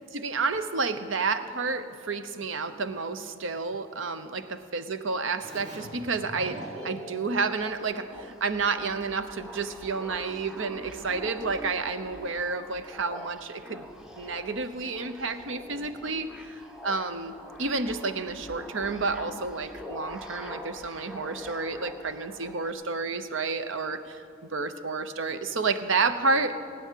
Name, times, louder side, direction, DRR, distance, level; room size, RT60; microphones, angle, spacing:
voice 1, 0.1-13.9 14.2-17.3 17.6-24.2 24.5-26.6, right 4 dB, 65° right, 10 dB, 0.8 m, -30 dB
Keyboard (musical), 5.4-8.8, right 1 dB, 35° right, 2.9 m, -43 dB
sound 1, 7.4-22.7, equal, 5° right, 0.7 m, -44 dB
19.0 x 9.8 x 7.5 m, 2.3 s
head